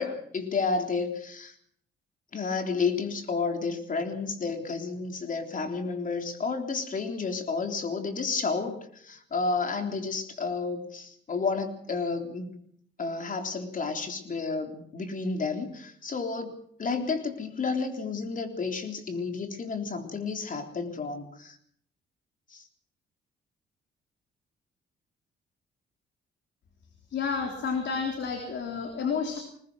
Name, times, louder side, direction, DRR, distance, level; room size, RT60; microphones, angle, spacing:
voice 1, 0.0-1.5 2.3-12.5 13.0-16.5 16.8-21.6 22.5-22.6, left 4 dB, 40° left, 6 dB, 3.7 m, -31 dB
voice 2, 27.1-29.4, left 5 dB, 65° left, 3 dB, 3.8 m, -30 dB
21.5 x 19.5 x 6.3 m, 0.64 s
cardioid pair, 90°, 20 cm